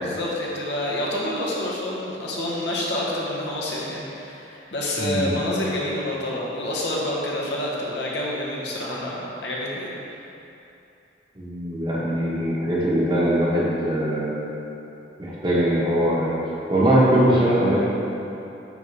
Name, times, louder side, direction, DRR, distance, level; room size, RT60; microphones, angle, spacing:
voice 1, 0.0-10.2, left 1 dB, 75° left, -4 dB, 1.1 m, -28 dB
voice 2, 5.0-5.3 11.4-14.5 15.2-16.4 16.7-17.8, right 1 dB, 30° right, -6 dB, 1.1 m, -21 dB
9.8 x 3.7 x 3.4 m, 2.9 s
head